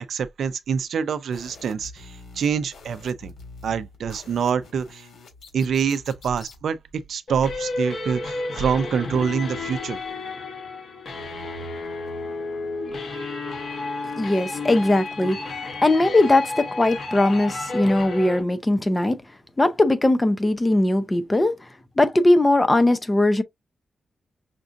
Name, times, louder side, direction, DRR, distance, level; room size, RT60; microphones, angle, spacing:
voice 1, 0.0-3.3 3.6-5.1 5.5-10.0, right 7 dB, 75° right, 0.4 m, -26 dB
sound 1, 1.3-6.6, left 3 dB, 85° left, 2.1 m, -46 dB
sound 2, 7.3-18.4, left 3 dB, 60° left, 1.6 m, -32 dB
voice 2, 14.1-15.4 15.8-19.2 19.6-21.6 22.0-23.4, left 2 dB, 15° left, 0.6 m, -19 dB
5.8 x 2.5 x 2.5 m
wide cardioid pair, 140°, 0 cm